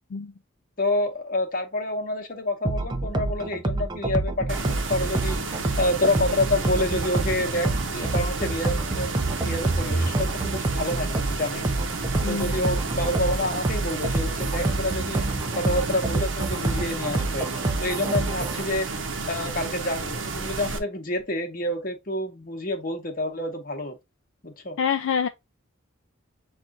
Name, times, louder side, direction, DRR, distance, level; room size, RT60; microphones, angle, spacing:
voice 1, 0.8-11.7 12.3-15.2 15.6-18.9 19.3-24.0 24.4-24.8, left 1 dB, 45° left, 1.0 m, -28 dB
sound 1, 2.6-18.6, right 2 dB, 20° right, 0.4 m, -27 dB
sound 2, 4.5-20.8, right 4 dB, 70° right, 0.7 m, -32 dB
voice 2, 12.2-12.6 24.8-25.3, left 6 dB, 70° left, 0.3 m, -26 dB
7.3 x 2.5 x 2.5 m
head